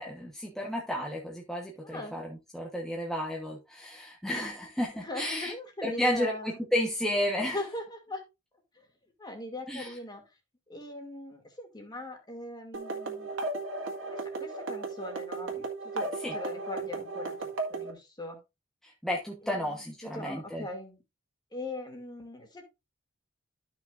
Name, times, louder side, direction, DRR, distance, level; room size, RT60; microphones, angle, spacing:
voice 1, 0.0-5.5 5.8-7.6 9.7-9.9 16.2-16.3 18.8-20.7, left 1 dB, ahead, -2 dB, 1.2 m, -32 dB
voice 2, 1.8-2.2 5.0-6.6 7.3-8.2 8.8-8.9 9.2-10.2 10.7-13.3 14.1-15.7 15.9-18.4 19.4-19.7 20.0-21.0 21.5-22.6, left 1 dB, 20° left, 3 dB, 2.4 m, -40 dB
sound 1, 12.7-17.9, right 3 dB, 70° right, 2.0 m, -35 dB
13.0 x 6.0 x 2.5 m, 0.24 s
head